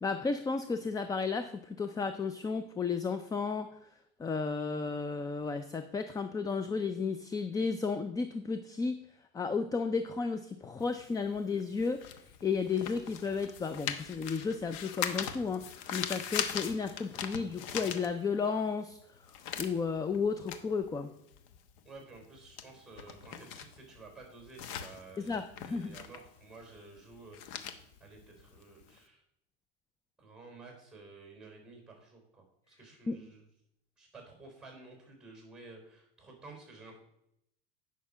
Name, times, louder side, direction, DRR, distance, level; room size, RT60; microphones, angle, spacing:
voice 1, 0.0-3.7 4.2-9.0 9.3-12.0 12.4-19.0 19.6-21.1 25.2-26.0 33.1-33.2, left 5 dB, 15° left, 9 dB, 0.4 m, -33 dB
sound 1, 10.8-18.6 18.9-29.0, left 8 dB, 65° left, 1.1 m, -41 dB
voice 2, 21.8-27.7 28.0-29.2 30.2-33.4 34.0-37.0, right 3 dB, 5° right, 2 dB, 4.3 m, -52 dB
9.5 x 6.0 x 5.6 m, 0.77 s
supercardioid pair, 120°, 29 cm